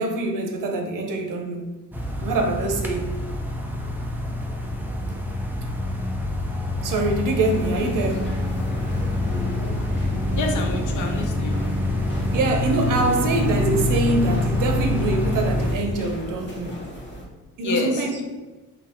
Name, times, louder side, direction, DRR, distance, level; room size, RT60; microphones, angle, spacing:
voice 1, 0.0-1.6 2.2-3.1 6.8-8.3 12.3-16.7 17.6-18.1, right 2 dB, 90° right, 0.8 m, -24 dB
sound 1, 1.9-15.8, left 1 dB, 5° right, 0.5 m, -26 dB
sound 2, 7.4-17.2, equal, 35° left, 1.4 m, -36 dB
voice 2, 10.3-11.5 17.6-18.2, left 3 dB, 75° left, 0.9 m, -28 dB
4.0 x 2.8 x 4.3 m
cardioid pair, 130°, 31 cm